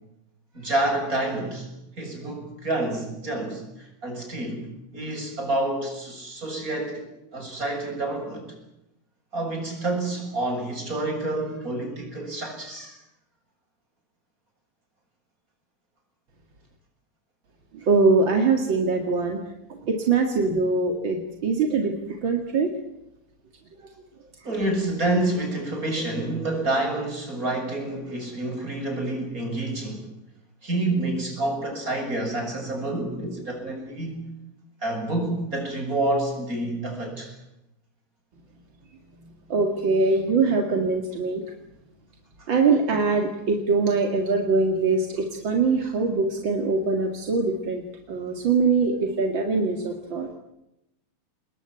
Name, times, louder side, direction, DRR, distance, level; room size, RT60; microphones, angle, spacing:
voice 1, 0.5-1.7 2.0-4.7 4.9-8.5 9.3-13.0 24.4-30.1 30.6-34.2 34.8-37.3 42.4-42.5, right 2 dB, 20° right, 1 dB, 7.7 m, -28 dB
voice 2, 17.7-19.4 19.7-21.9 22.2-22.7 39.5-41.4 42.5-50.4, right 4 dB, 40° right, 3 dB, 2.0 m, -23 dB
28.5 x 20.5 x 9.1 m, 0.87 s
omnidirectional pair, 4.4 m